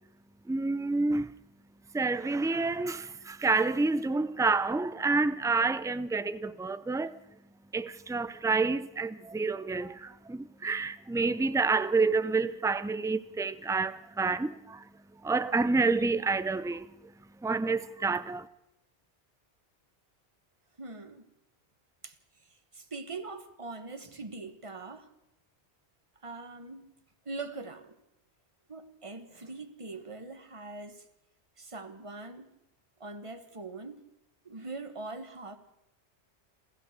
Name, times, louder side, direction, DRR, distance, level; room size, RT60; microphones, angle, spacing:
voice 1, 0.5-1.3 1.9-7.2 7.7-14.8 15.2-16.9 17.4-18.5, right 3 dB, 5° right, 0.4 m, -28 dB
voice 2, 20.8-21.2 22.0-22.2 22.4-25.1 26.2-26.9 27.2-28.0 28.7-31.0 31.6-32.5 33.0-34.0 34.4-35.6, right 3 dB, 30° right, 1.4 m, -42 dB
27.5 x 14.5 x 6.6 m
omnidirectional pair, 1.1 m